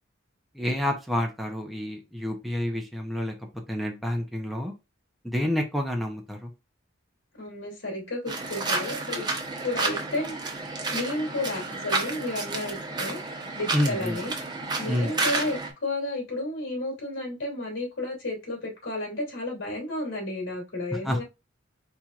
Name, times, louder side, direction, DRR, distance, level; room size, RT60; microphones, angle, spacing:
voice 1, 0.5-4.7 5.2-6.5 13.7-14.2 14.8-15.1 20.9-21.2, left 1 dB, ahead, 0.7 m, -29 dB
voice 2, 7.4-9.3 9.6-10.3 10.9-13.2 13.5-14.3 14.8-21.2, left 2 dB, 80° left, 2.8 m, -32 dB
sound 1, 8.3-15.7, right 3 dB, 20° right, 0.9 m, -31 dB
4.4 x 4.4 x 2.4 m
head